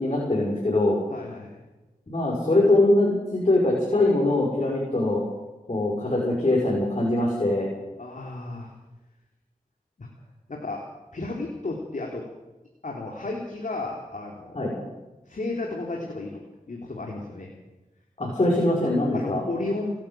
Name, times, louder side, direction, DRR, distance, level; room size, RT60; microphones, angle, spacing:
voice 1, 0.0-1.0 2.1-5.2 5.7-7.7 14.5-14.7 18.2-19.4, left 2 dB, 40° left, -3 dB, 6.4 m, -22 dB
voice 2, 1.1-1.6 8.0-8.7 10.0-10.1 10.5-10.8 11.1-12.2 12.8-14.6 15.3-16.4 16.7-17.5 19.1-19.9, left 2 dB, 60° left, 0 dB, 3.7 m, -33 dB
29.5 x 12.5 x 7.8 m, 1.1 s
wide cardioid pair, 90°, 15 cm